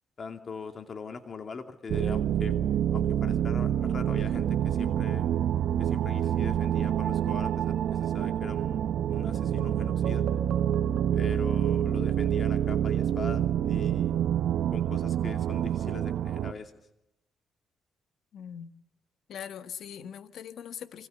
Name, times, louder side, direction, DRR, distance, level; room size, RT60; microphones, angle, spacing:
voice 1, 0.2-2.6 2.9-5.3 5.8-10.2 11.1-14.2 14.7-16.7, left 5 dB, 40° left, 2.6 m, -42 dB
sound 1, 1.9-16.5, right 10 dB, 70° right, 1.2 m, -27 dB
voice 2, 18.3-18.7 19.3-21.1, left 8 dB, 70° left, 1.8 m, -41 dB
29.5 x 25.5 x 6.9 m
cardioid pair, 90°, 0 cm